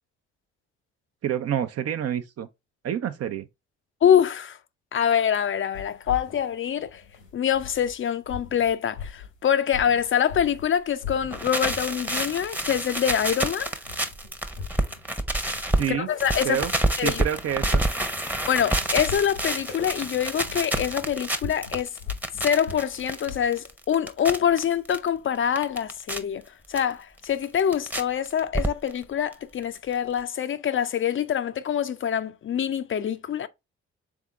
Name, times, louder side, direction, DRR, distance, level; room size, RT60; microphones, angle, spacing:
voice 1, 1.2-2.5 2.8-3.5 15.8-16.1 16.4-16.7 17.0-17.8, right 9 dB, 50° right, 0.7 m, -27 dB
voice 2, 4.0-4.6 4.9-7.0 7.3-13.7 15.9-16.6 17.0-17.2 18.5-22.0 22.4-26.4 26.7-33.5, left 9 dB, 40° left, 0.5 m, -25 dB
sound 1, 5.7-8.0 8.2-10.7 11.0-12.0 12.3-13.5 13.8-23.5, left 6 dB, 90° left, 1.4 m, -41 dB
sound 2, 11.2-15.9 16.2-25.0 25.3-26.2 26.8-26.9 27.2-28.0 28.3-29.0 29.3-29.4 29.6-29.7 29.9-30.0, right 1 dB, 5° right, 0.8 m, -28 dB
3.6 x 3.6 x 3.4 m
hypercardioid pair, 50°, 31 cm